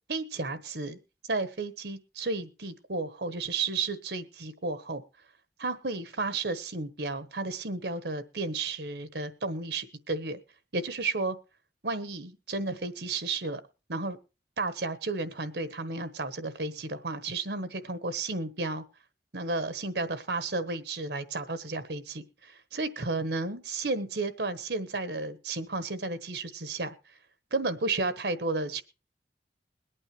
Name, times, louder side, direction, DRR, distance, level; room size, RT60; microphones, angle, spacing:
voice 1, 0.1-1.0 1.3-5.0 5.6-10.4 10.7-11.4 11.8-13.6 13.9-14.2 14.6-18.8 19.3-26.9 27.5-28.8, right 3 dB, 70° right, 11 dB, 1.2 m, -32 dB
22.0 x 8.9 x 3.2 m, 0.31 s
head